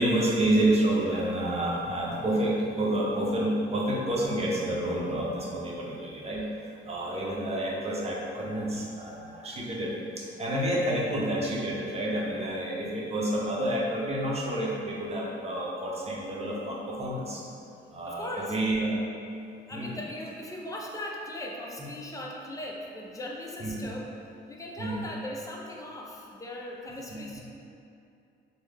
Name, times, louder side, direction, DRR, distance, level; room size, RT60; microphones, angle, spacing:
voice 1, 0.0-17.4 17.9-19.0 19.7-20.0 21.8-21.9 23.6-23.9 24.8-25.0 27.1-27.2, right 1 dB, 30° right, -4 dB, 0.7 m, -29 dB
voice 2, 18.0-18.6 19.7-24.1 24.5-27.4, left 1 dB, 15° left, -1 dB, 0.5 m, -39 dB
3.8 x 2.0 x 3.3 m, 2.6 s
cardioid pair, 90°, 20 cm